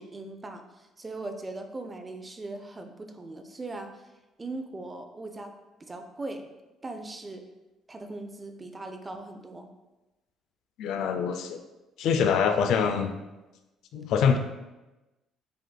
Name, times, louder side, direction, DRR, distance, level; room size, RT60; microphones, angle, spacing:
voice 1, 0.0-4.0 4.4-5.5 5.9-6.4 6.8-7.4 7.9-9.7, right 2 dB, 20° right, 6 dB, 0.4 m, -39 dB
voice 2, 10.8-11.6 12.0-13.1 13.9-14.4, left 6 dB, 75° left, 6 dB, 0.4 m, -24 dB
7.5 x 2.5 x 2.2 m, 1.1 s
cardioid pair, 105°, 0 cm